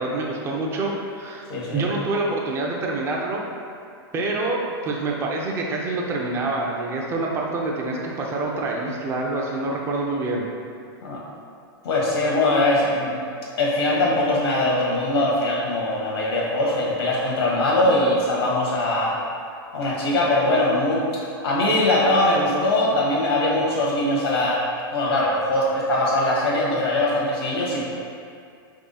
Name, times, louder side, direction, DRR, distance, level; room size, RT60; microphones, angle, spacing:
voice 1, 0.0-1.4 1.7-3.4 4.1-10.4, right 2 dB, 20° right, -2 dB, 0.5 m, -26 dB
voice 2, 1.5-1.8 11.0-11.2 11.8-13.1 13.6-19.2 19.7-24.6 24.9-27.8, left 1 dB, 85° left, -4 dB, 1.4 m, -21 dB
3.6 x 3.3 x 4.0 m, 2.3 s
hypercardioid pair, 135°, 13 cm